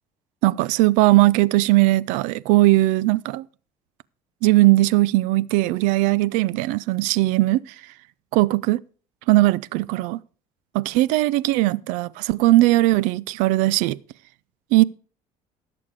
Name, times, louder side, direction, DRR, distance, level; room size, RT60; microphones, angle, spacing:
voice 1, 0.4-3.4 4.4-7.6 8.4-8.8 9.3-10.2 10.7-14.0 14.7-14.8, right 18 dB, 80° right, 0.5 m, -19 dB
16.0 x 7.0 x 4.8 m
cardioid pair, 140°, 13 cm